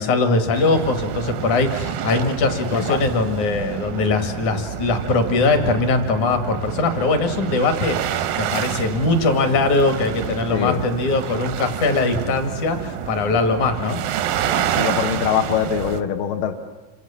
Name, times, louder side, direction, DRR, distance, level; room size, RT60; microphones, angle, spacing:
voice 1, 0.0-14.0, left 3 dB, 65° left, 8 dB, 3.5 m, -21 dB
sound 1, 0.5-16.0, right 10 dB, 90° right, 2.8 m, -28 dB
voice 2, 14.5-16.5, left 9 dB, 85° left, 3 dB, 2.9 m, -23 dB
28.0 x 24.5 x 7.2 m, 1.2 s
omnidirectional pair, 3.9 m